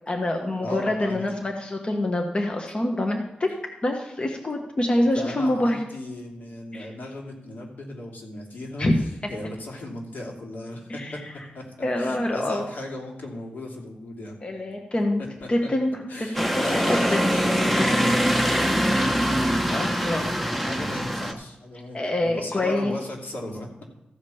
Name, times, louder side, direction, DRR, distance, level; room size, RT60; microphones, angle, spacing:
voice 1, 0.1-3.5 3.8-5.8 6.7-6.9 8.8-8.9 10.9-11.2 11.8-12.7 14.4-15.2 15.5-17.3 17.7-18.2 19.7-20.3 21.9-22.9, left 1 dB, 35° left, 2 dB, 1.2 m, -26 dB
voice 2, 0.6-1.3 5.1-8.9 9.3-11.2 11.5-11.6 12.0-14.4 15.2-15.7 16.1-23.8, left 1 dB, 80° left, 0 dB, 2.7 m, -36 dB
sound 1, 16.3-21.3, equal, 5° left, 1.0 m, -23 dB
14.5 x 5.2 x 7.0 m, 0.97 s
wide cardioid pair, 100°, 3 cm